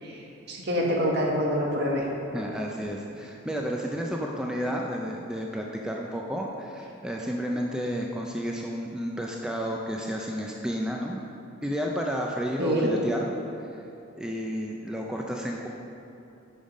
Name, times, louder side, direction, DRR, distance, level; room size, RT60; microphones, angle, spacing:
voice 1, 0.5-2.0 12.6-12.9, equal, 55° right, -1 dB, 1.4 m, -26 dB
voice 2, 2.3-11.2 11.6-13.3 13.7-13.8 14.2-15.7, equal, 5° right, -1 dB, 0.4 m, -31 dB
8.8 x 5.5 x 5.1 m, 2.8 s
head